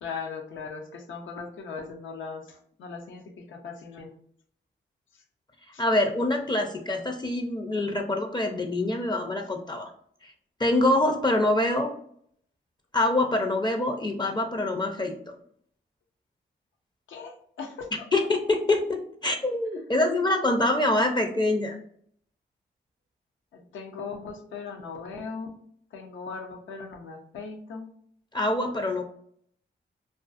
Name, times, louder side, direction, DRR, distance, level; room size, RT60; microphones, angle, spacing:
voice 1, 0.0-3.2 3.5-4.1 5.7-5.8 17.1-17.9 23.5-25.5 25.9-27.9, left 5 dB, 85° left, 3 dB, 0.5 m, -38 dB
voice 2, 5.8-9.9 10.2-10.3 10.6-11.9 12.9-15.2 18.1-21.8 28.3-29.0, left 2 dB, 25° left, 3 dB, 0.4 m, -25 dB
2.4 x 2.3 x 2.4 m, 0.64 s
supercardioid pair, 45°, 19 cm